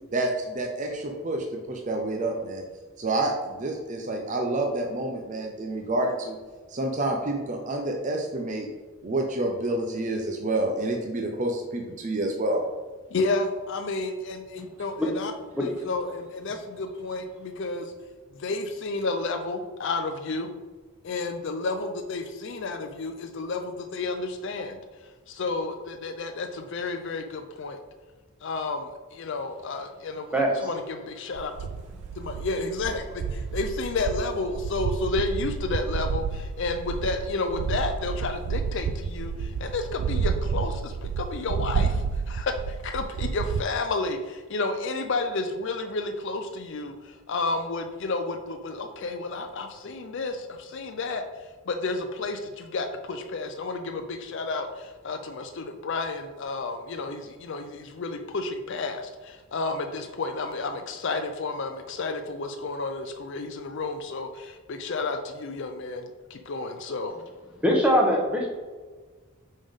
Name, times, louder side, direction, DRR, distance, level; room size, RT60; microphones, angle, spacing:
voice 1, 0.1-2.6 3.0-6.4 6.7-8.7 9.0-12.6, right 2 dB, 35° right, 2 dB, 0.5 m, -28 dB
voice 2, 13.1-15.3 15.6-17.9 18.3-20.5 21.0-24.8 25.3-27.8 28.4-31.5 32.2-51.2 51.7-67.1, left 3 dB, 55° left, 5 dB, 0.4 m, -31 dB
voice 3, 30.3-30.7 67.6-68.5, equal, 5° right, -1 dB, 1.0 m, -22 dB
sound 1, 31.4-43.6, right 6 dB, 85° right, 0.3 m, -30 dB
5.4 x 5.2 x 3.6 m, 1.4 s
head